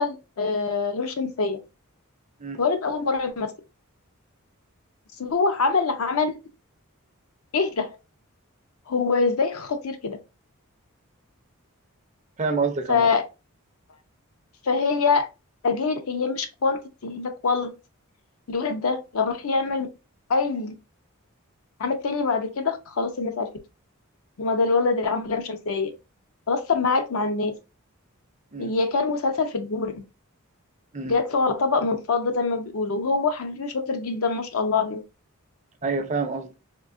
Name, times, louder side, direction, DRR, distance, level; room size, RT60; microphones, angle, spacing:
voice 1, 0.0-1.6 2.6-3.5 5.2-6.4 7.5-7.9 8.9-10.2 12.9-13.2 14.6-15.3 15.6-17.7 18.5-19.9 20.3-20.7 21.8-23.5 24.4-25.9 26.5-27.5 28.6-30.0 31.0-35.0, left 4 dB, 75° left, 0.6 m, -24 dB
voice 2, 12.4-13.1 28.5-28.7 30.9-31.2 35.8-36.5, right 4 dB, 30° right, 0.5 m, -27 dB
3.7 x 2.7 x 2.5 m
head